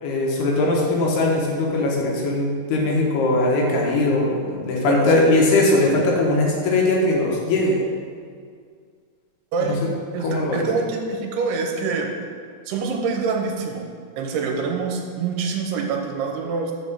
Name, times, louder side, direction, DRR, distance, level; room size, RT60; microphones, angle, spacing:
voice 1, 0.0-7.8 9.7-9.8 10.2-10.6, left 2 dB, 75° left, -2 dB, 3.0 m, -20 dB
voice 2, 9.5-9.8 10.1-12.2 12.7-13.8 14.2-16.7, right 5 dB, 80° right, 2 dB, 2.8 m, -25 dB
7.8 x 4.3 x 6.9 m, 2.1 s
omnidirectional pair, 4.8 m